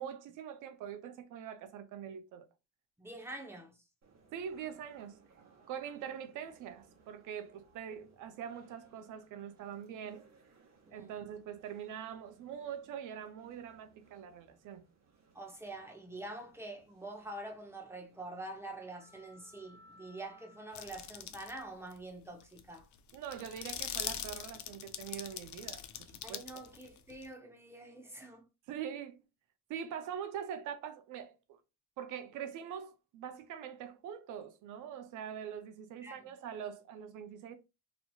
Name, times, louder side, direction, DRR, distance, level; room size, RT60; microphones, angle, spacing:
voice 1, 0.0-2.5 4.3-5.2 5.7-10.3 10.9-14.8 23.1-26.4 28.7-29.2 29.7-31.6 32.0-37.6, right 8 dB, 85° right, 0.6 m, -43 dB
voice 2, 3.0-3.8 10.9-11.1 15.3-22.9 26.2-28.5 36.0-36.3, right 2 dB, 10° right, 0.7 m, -46 dB
sound 1, 4.0-21.2, right 2 dB, 60° right, 1.2 m, -64 dB
sound 2, 20.8-21.6 21.9-22.0 22.4-27.3, left 10 dB, 70° left, 0.5 m, -42 dB
3.0 x 2.8 x 2.3 m
cardioid pair, 90°, 30 cm